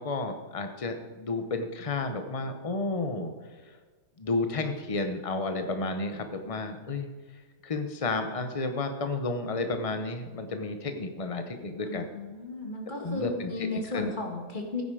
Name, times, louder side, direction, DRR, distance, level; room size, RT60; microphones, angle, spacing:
voice 1, 0.0-3.3 3.6-3.8 4.2-7.1 7.6-12.1 13.0-14.1, left 3 dB, 55° left, 7 dB, 0.4 m, -32 dB
voice 2, 11.8-14.8, left 3 dB, 25° left, 1 dB, 2.2 m, -35 dB
15.5 x 9.3 x 5.0 m, 1.4 s
omnidirectional pair, 2.1 m